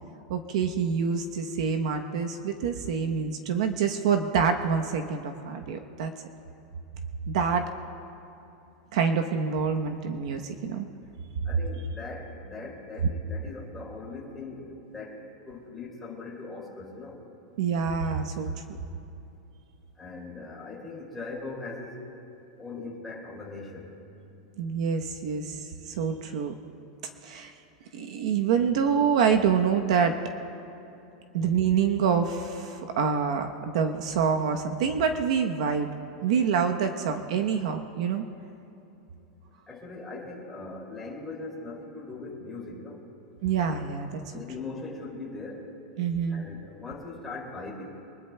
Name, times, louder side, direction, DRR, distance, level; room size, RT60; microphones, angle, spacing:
voice 1, 0.3-6.1 7.3-7.7 8.9-10.9 17.6-18.8 24.6-26.5 27.2-27.5 27.9-30.2 31.3-35.9 36.2-38.2 43.4-44.2 46.0-46.4, right 6 dB, 60° right, 5 dB, 0.9 m, -26 dB
voice 2, 11.5-15.2 15.5-17.2 20.0-22.0 22.6-23.9 39.7-43.0 44.3-45.6 46.3-48.0, left 3 dB, 5° left, -5 dB, 2.4 m, -40 dB
24.5 x 20.0 x 2.2 m, 2.9 s
supercardioid pair, 175°, 4 cm